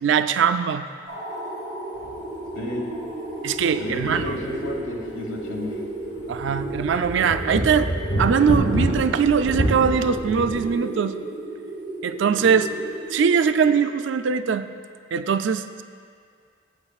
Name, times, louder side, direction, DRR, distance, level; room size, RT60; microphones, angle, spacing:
voice 1, 0.0-0.8 3.4-4.4 6.3-7.9 8.2-11.2 12.0-12.7 13.1-14.7 15.1-15.8, right 6 dB, 65° right, 11 dB, 0.3 m, -21 dB
sound 1, 1.1-14.3, right 2 dB, 25° right, 2.5 m, -34 dB
sound 2, 2.0-2.2 2.5-2.6 3.6-5.0 5.4-5.5 6.0-10.7, equal, 50° left, 1.2 m, -28 dB
voice 2, 3.7-5.8 12.4-12.6, left 1 dB, 85° left, 0 dB, 1.3 m, -31 dB
14.5 x 8.1 x 2.4 m, 2.1 s
head